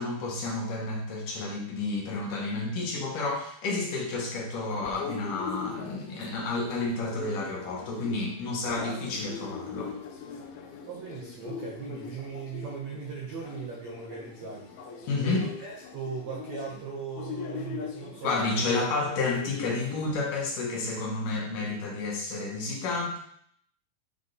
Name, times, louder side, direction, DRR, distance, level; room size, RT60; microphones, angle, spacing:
voice 1, 0.0-10.0 15.1-15.5 18.2-23.2, left 3 dB, 65° left, -2 dB, 2.8 m, -30 dB
sound 1, 4.6-20.1, left 5 dB, 90° left, 2.7 m, -41 dB
voice 2, 10.8-14.7 15.2-18.7, right 5 dB, 70° right, -3 dB, 1.7 m, -38 dB
9.2 x 3.7 x 3.9 m, 0.65 s
omnidirectional pair, 4.2 m